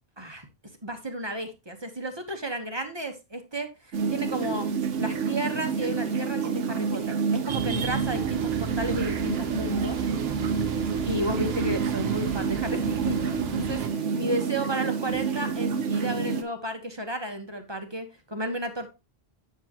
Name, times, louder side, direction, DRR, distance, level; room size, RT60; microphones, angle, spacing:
voice 1, 0.2-0.5 0.8-3.7 4.1-4.7 5.0-10.0 10.4-10.5 11.0-18.9, right 1 dB, 20° right, 1.2 m, -32 dB
sound 1, 3.9-16.4, right 6 dB, 75° right, 1.3 m, -28 dB
sound 2, 7.5-13.9, right 6 dB, 60° right, 1.1 m, -35 dB
8.9 x 7.2 x 3.0 m
omnidirectional pair, 1.2 m